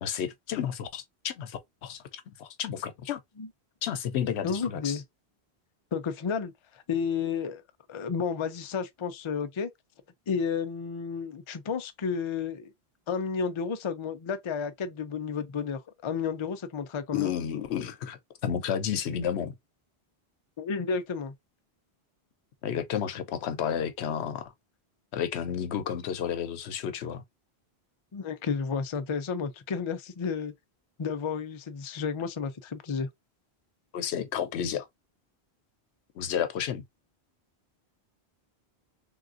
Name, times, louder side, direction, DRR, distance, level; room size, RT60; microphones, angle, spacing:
voice 1, 0.0-3.2 3.8-5.0 17.1-19.5 22.6-24.5 25.1-27.2 33.9-34.9 36.2-36.8, left 8 dB, 85° left, 0.9 m, -32 dB
voice 2, 4.4-5.0 5.9-7.6 7.9-9.7 10.3-12.7 13.1-17.3 20.6-21.3 28.1-30.5 31.0-33.1, left 6 dB, 40° left, 0.4 m, -32 dB
3.6 x 2.5 x 2.4 m
omnidirectional pair, 1.1 m